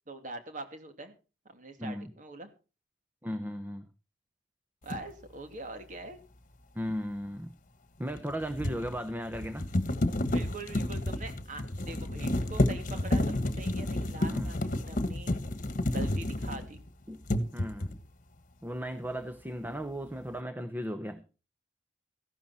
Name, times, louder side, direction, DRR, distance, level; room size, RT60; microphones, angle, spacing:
voice 1, 0.1-1.2 1.4-2.5 4.8-6.2 10.3-15.3 15.9-16.8, right 2 dB, 45° right, 2.6 m, -43 dB
voice 2, 1.8-2.1 3.2-3.9 6.7-7.5 8.0-9.7 14.2-14.6 17.1-17.2 17.5-18.0 18.6-21.2, equal, 10° right, 1.0 m, -36 dB
sound 1, 4.9-5.1 8.1-16.9 17.2-18.0, left 1 dB, 45° left, 1.4 m, -30 dB
15.5 x 12.0 x 4.2 m
head